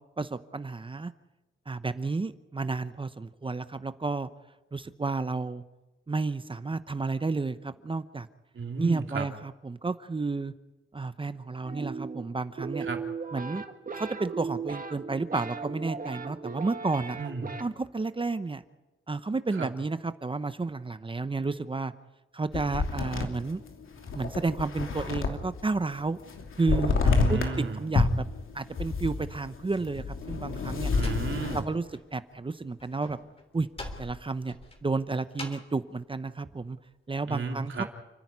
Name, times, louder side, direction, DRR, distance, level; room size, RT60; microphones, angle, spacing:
voice 1, 0.2-1.1 1.7-4.3 4.7-5.6 6.1-8.3 8.8-10.5 10.9-12.9 13.3-13.6 13.9-17.2 17.6-18.6 19.1-21.9 22.3-23.6 24.1-26.2 26.6-27.4 27.7-28.3 28.5-30.9 31.5-31.8 32.1-33.2 33.5-33.7 34.0-34.5 34.8-36.8 37.1-37.8, right 3 dB, 25° right, 12 dB, 0.8 m, -31 dB
voice 2, 8.5-9.3 12.8-13.0 17.2-17.5 19.5-19.7 27.0-27.8 30.9-31.7 37.3-37.9, right 4 dB, 70° right, 4 dB, 2.7 m, -33 dB
sound 1, 11.6-17.6, right 5 dB, 45° right, 1.7 m, -37 dB
sound 2, 22.5-25.6 25.9-27.6 27.9-31.6, left 4 dB, 85° left, 3.0 m, -28 dB
Slam, 30.8-32.1 32.3-35.8, left 2 dB, 30° left, 3.5 m, -44 dB
29.0 x 10.5 x 9.7 m, 1.1 s
wide cardioid pair, 105°, 21 cm